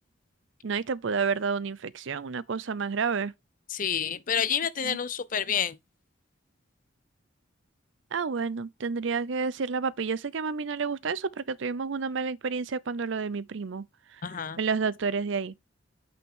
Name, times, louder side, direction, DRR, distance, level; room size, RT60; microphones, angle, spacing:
voice 1, 0.6-3.3 4.8-5.0 8.1-13.9 14.1-14.2 14.6-15.5, right 5 dB, 65° right, 0.5 m, -30 dB
voice 2, 3.7-5.8 14.2-14.6, left 8 dB, 40° left, 0.6 m, -29 dB
9.0 x 5.8 x 3.6 m
head